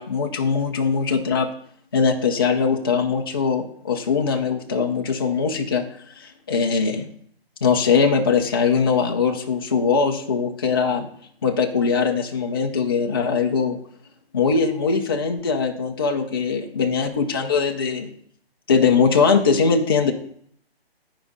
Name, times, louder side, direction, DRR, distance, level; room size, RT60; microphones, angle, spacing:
voice 1, 0.0-1.5 1.9-5.9 6.2-7.1 7.6-11.1 11.4-13.8 14.3-18.1 18.7-20.1, left 5 dB, 25° left, 2 dB, 0.5 m, -21 dB
9.3 x 4.9 x 5.1 m, 0.63 s
hypercardioid pair, 165°, 31 cm